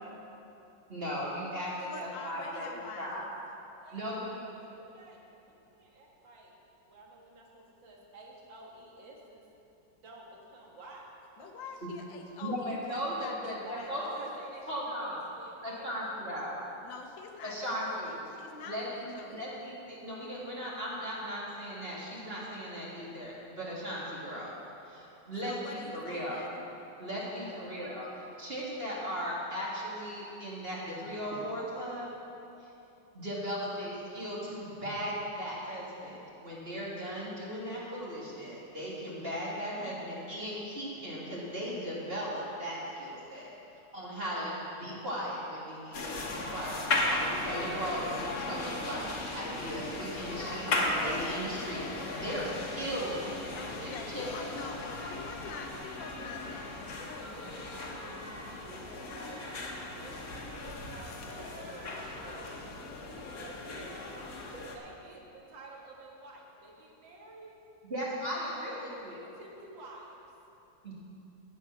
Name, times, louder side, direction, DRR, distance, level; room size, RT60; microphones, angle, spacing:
voice 1, 0.9-2.7 3.0-3.2 3.9-4.4 12.4-14.3 14.7-15.2 15.6-16.6 17.4-18.2 18.6-24.6 24.9-26.4 27.0-28.1 28.4-32.1 33.1-43.5 43.9-54.3 67.9-69.2 70.8-70.9, equal, 30° right, -6 dB, 2.1 m, -37 dB
voice 2, 1.8-3.3 11.4-14.1 16.8-19.5 25.4-26.6 53.5-56.8, left 4 dB, 85° left, 3 dB, 1.7 m, -45 dB
voice 3, 3.8-4.4 4.7-6.5 6.8-9.4 9.9-11.5 13.6-15.9 27.4-27.6 54.2-56.9 57.2-62.5 63.4-67.5 68.6-70.3, right 2 dB, 85° right, -2 dB, 2.3 m, -51 dB
sound 1, 45.9-64.8, left 2 dB, 55° left, 1.5 m, -36 dB
16.0 x 5.5 x 6.0 m, 2.9 s
omnidirectional pair, 2.0 m